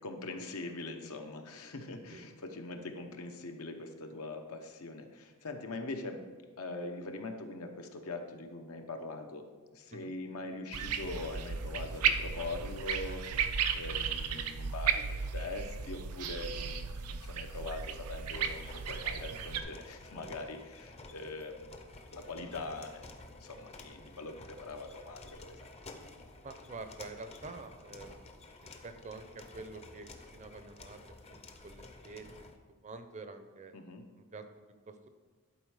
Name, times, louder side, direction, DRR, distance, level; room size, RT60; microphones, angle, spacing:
voice 1, 0.0-6.2 6.6-9.5 9.7-13.3 13.7-21.8 22.1-25.7 33.7-34.0, left 2 dB, 75° left, 4 dB, 0.9 m, -42 dB
sound 1, 10.7-19.6, right 7 dB, 85° right, 0.6 m, -34 dB
sound 2, 18.3-32.6, left 2 dB, 30° left, 0.6 m, -51 dB
voice 2, 26.4-28.2 28.6-30.1 30.3-32.3 32.8-33.7 34.2-34.4 34.9-35.1, right 3 dB, 30° right, 8 dB, 0.6 m, -47 dB
11.0 x 4.5 x 4.9 m, 1.4 s
head